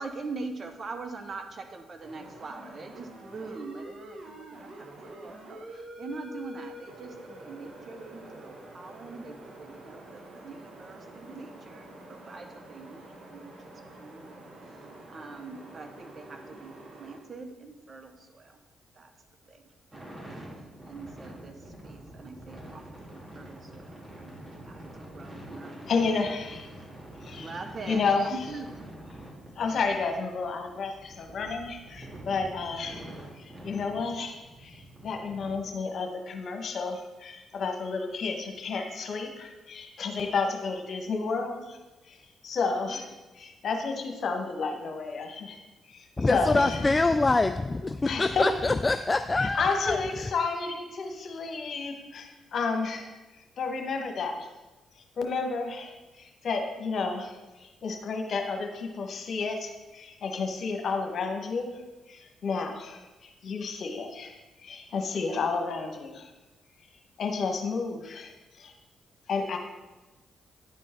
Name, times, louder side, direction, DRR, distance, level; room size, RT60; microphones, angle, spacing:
voice 1, 0.0-13.7 14.0-18.6 18.9-19.1 19.5-19.6 19.9-20.4 20.8-21.5 21.8-22.8 23.1-24.9 25.1-25.8 27.4-28.0 28.3-28.7, right 3 dB, 50° right, 1.0 m, -43 dB
sound 1, 2.0-17.2, right 1 dB, 65° right, 1.4 m, -47 dB
sound 2, 19.9-35.5, right 1 dB, 30° right, 2.7 m, -46 dB
voice 2, 25.9-26.7 27.2-27.6 27.8-28.4 29.6-33.1 33.3-41.8 42.0-45.6 45.9-46.8 48.0-48.5 49.4-54.5 55.2-66.3 67.2-68.7 69.3-69.6, left 4 dB, 60° left, 1.3 m, -31 dB
voice 3, 46.2-50.0, left 3 dB, 30° left, 0.3 m, -25 dB
10.0 x 4.5 x 4.4 m
hypercardioid pair, 45°, 0 cm